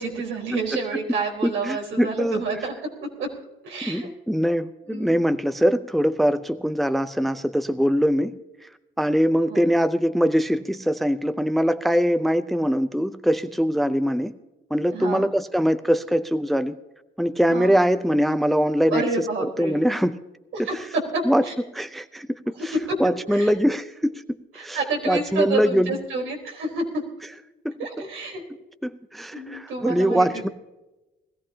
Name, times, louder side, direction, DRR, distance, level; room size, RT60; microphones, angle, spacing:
voice 1, 0.0-2.7 3.0-3.3 3.6-4.1 4.9-5.2 9.5-9.8 14.9-15.3 17.5-17.8 18.9-19.9 20.5-21.5 22.6-23.0 23.3-23.6 24.5-27.0 27.8-28.4 29.3-30.5, right 3 dB, 75° right, 0 dB, 4.3 m, -29 dB
voice 2, 1.4-2.4 3.8-8.4 9.0-14.3 14.7-16.7 17.2-19.0 19.4-20.1 20.6-20.9 21.2-21.4 21.7-22.7 23.0-24.2 24.6-24.8 25.0-25.9 27.6-27.7 28.8-30.5, equal, ahead, 12 dB, 0.6 m, -22 dB
20.0 x 15.0 x 2.8 m, 1.0 s
cardioid pair, 90°, 20 cm